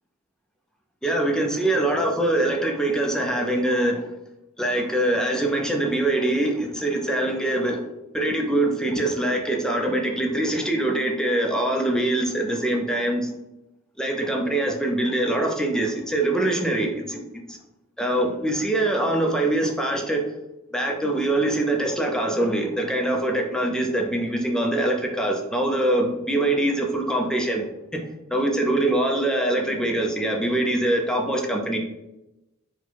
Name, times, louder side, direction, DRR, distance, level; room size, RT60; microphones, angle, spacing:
voice 1, 1.0-4.1 4.6-7.8 8.1-13.3 14.0-17.2 17.5-17.6 18.0-20.3 20.7-27.7 27.9-28.0 28.3-31.8, right 1 dB, 5° left, 1 dB, 0.6 m, -23 dB
4.2 x 2.3 x 4.5 m, 0.92 s
head